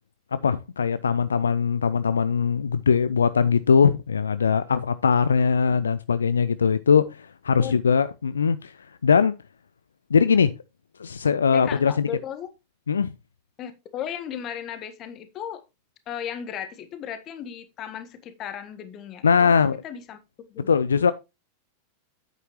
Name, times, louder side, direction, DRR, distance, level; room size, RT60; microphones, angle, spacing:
voice 1, 0.3-9.3 10.1-10.5 11.0-12.1 12.9-13.1 19.2-19.8 20.7-21.1, left 6 dB, 70° left, 0.4 m, -21 dB
voice 2, 11.5-12.5 13.6-15.6 16.1-20.2 20.5-20.7, left 9 dB, 35° left, 1.4 m, -36 dB
9.2 x 8.2 x 3.1 m
figure-of-eight pair, 90°, 0 cm